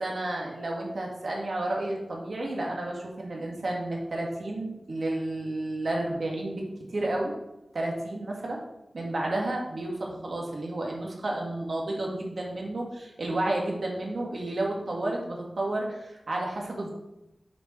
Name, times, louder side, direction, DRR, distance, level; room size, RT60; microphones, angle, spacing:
voice 1, 0.0-7.3 7.7-8.6 8.9-16.9, right 1 dB, 70° right, -1 dB, 1.7 m, -31 dB
6.8 x 4.6 x 4.4 m, 0.91 s
wide cardioid pair, 95°, 0 cm